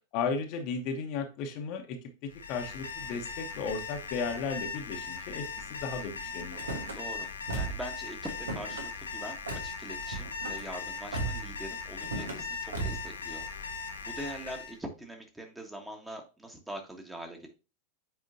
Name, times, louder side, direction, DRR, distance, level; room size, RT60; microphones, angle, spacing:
voice 1, 0.1-6.6, left 5 dB, 40° left, 4 dB, 1.1 m, -35 dB
Alarm, 2.3-14.8, left 5 dB, 70° left, 0.9 m, -39 dB
Car / Slam, 6.5-7.0 7.5-7.9 8.2-8.9 9.5-9.7 10.1-10.6 11.1-11.5 12.0-12.4 12.7-13.1, right 3 dB, 70° right, 1.5 m, -36 dB
voice 2, 6.9-7.3 7.5-13.7 14.0-17.5, right 1 dB, 5° right, 2 dB, 1.4 m, -43 dB
7.7 x 4.9 x 2.7 m, 0.31 s
figure-of-eight pair, 90°, 0 cm